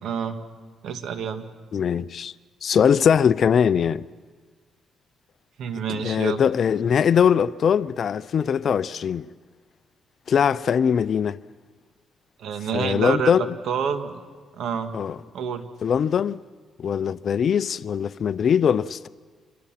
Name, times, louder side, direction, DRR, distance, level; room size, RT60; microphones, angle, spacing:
voice 1, 0.0-0.4 0.8-1.5 5.6-6.4 12.4-14.2 14.6-15.0 15.3-15.6, right 7 dB, 75° right, 1.9 m, -28 dB
voice 2, 1.7-2.3 2.6-4.1 5.9-9.3 10.3-11.4 12.7-13.5 14.9-15.2 15.8-16.4 16.8-19.1, left 7 dB, 55° left, 0.6 m, -21 dB
28.0 x 25.0 x 6.0 m
cardioid pair, 90°, 0 cm